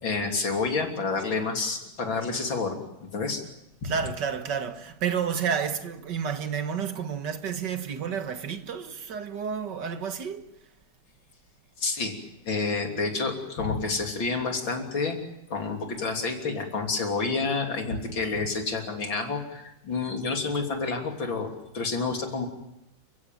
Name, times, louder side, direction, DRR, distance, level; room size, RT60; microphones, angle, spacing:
voice 1, 0.0-3.4 3.8-3.9 11.8-12.2 12.4-15.2 15.5-21.5 21.7-22.5, left 4 dB, 75° left, 4.0 m, -29 dB
voice 2, 3.8-10.5, right 7 dB, 65° right, 2.1 m, -30 dB
29.5 x 15.5 x 9.1 m
omnidirectional pair, 2.1 m